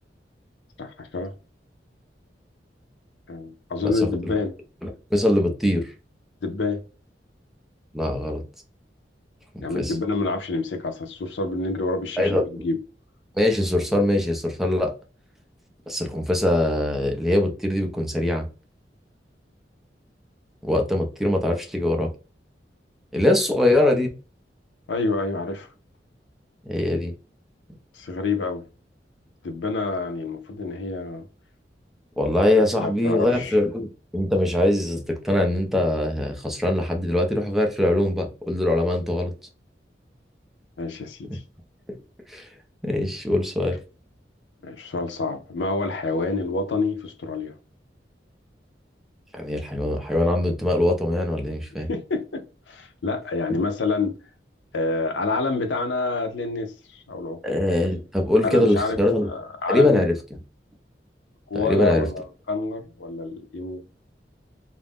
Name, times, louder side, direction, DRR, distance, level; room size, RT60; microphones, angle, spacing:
voice 1, 0.8-1.3 3.3-4.5 6.4-6.8 9.6-12.8 24.9-25.7 27.9-28.6 29.4-31.3 32.5-33.6 40.8-41.4 43.7-43.8 44.6-47.6 51.9-54.2 54.7-57.6 58.3-59.0 59.3-60.1 61.5-63.8, left 3 dB, 90° left, 0.5 m, -28 dB
voice 2, 4.8-5.9 7.9-8.4 9.7-9.9 12.2-12.6 13.3-14.9 15.9-18.5 20.6-22.1 23.1-24.1 26.6-27.1 32.2-33.9 34.1-39.3 41.9-42.0 42.3-42.5 42.8-43.8 49.3-51.9 57.4-59.3 59.7-60.2 61.5-62.1, left 1 dB, ahead, 0.4 m, -22 dB
2.4 x 2.0 x 3.4 m
head